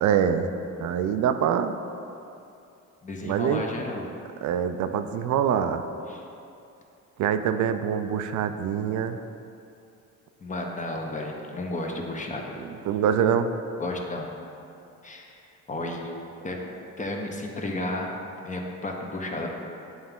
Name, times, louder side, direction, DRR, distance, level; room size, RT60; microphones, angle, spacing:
voice 1, 0.0-1.8 3.2-3.6 4.4-5.8 7.2-9.2 12.9-13.5, right 8 dB, 70° right, 9 dB, 0.4 m, -24 dB
voice 2, 3.0-4.1 6.1-6.2 10.4-12.4 13.8-14.3 15.0-15.4 15.7-16.1 16.4-16.6 17.0-18.1 18.4-19.5, left 2 dB, 25° left, 1 dB, 0.8 m, -32 dB
8.8 x 3.5 x 3.6 m, 2.7 s
cardioid pair, 90°, 30 cm